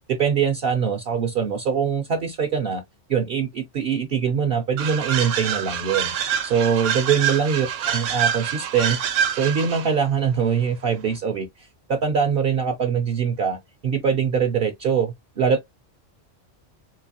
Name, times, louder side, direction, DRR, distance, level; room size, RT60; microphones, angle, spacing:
voice 1, 0.1-2.8 3.1-6.1 6.4-9.0 9.3-13.6 13.8-15.7, right 7 dB, 60° right, 0.7 m, -23 dB
sound 1, 4.8-9.9, right 8 dB, 80° right, 1.0 m, -26 dB
3.8 x 2.8 x 2.7 m
omnidirectional pair, 1.3 m